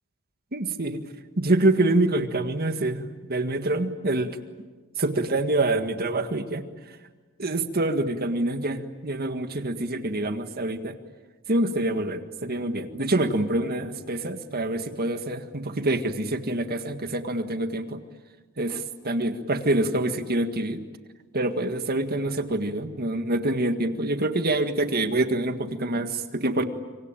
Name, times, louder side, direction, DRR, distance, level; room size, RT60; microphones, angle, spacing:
voice 1, 0.5-1.0 1.4-3.0 3.3-4.4 5.0-6.6 7.4-11.0 11.5-18.0 18.6-20.8 21.3-26.6, right 2 dB, 45° right, 8 dB, 1.8 m, -26 dB
26.5 x 25.0 x 9.0 m, 1.3 s
head